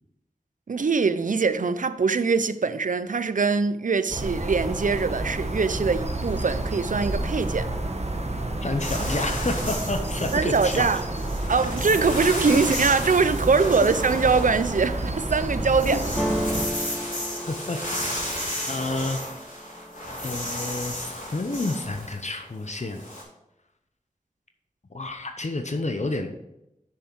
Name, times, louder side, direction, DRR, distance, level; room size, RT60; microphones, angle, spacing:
voice 1, 0.7-7.7 10.3-11.0 11.5-16.1, right 4 dB, 75° right, 0.5 m, -23 dB
sound 1, 4.1-16.7, right 1 dB, 55° right, 1.1 m, -30 dB
voice 2, 8.6-10.9 17.5-17.8 18.7-19.2 20.2-23.0 24.9-26.3, left 2 dB, 60° left, 0.8 m, -29 dB
sound 2, 8.8-15.2 15.5-23.2, left 1 dB, 75° left, 3.3 m, -33 dB
sound 3, 16.2-20.0 20.5-21.1 21.4-22.1, equal, ahead, 0.8 m, -33 dB
6.8 x 6.3 x 4.6 m
wide cardioid pair, 50°, 14 cm